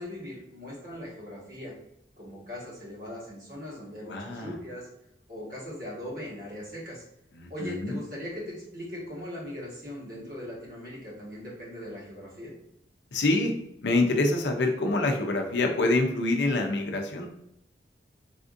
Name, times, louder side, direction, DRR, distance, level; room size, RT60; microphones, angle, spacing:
voice 1, 0.0-1.7 2.2-4.9 5.3-7.1 7.5-12.5, left 1 dB, 50° right, -6 dB, 1.4 m, -39 dB
voice 2, 4.0-4.5 7.4-8.0 13.1-13.5 13.8-17.3, left 2 dB, 85° left, 4 dB, 0.5 m, -26 dB
3.5 x 2.5 x 2.5 m, 0.78 s
head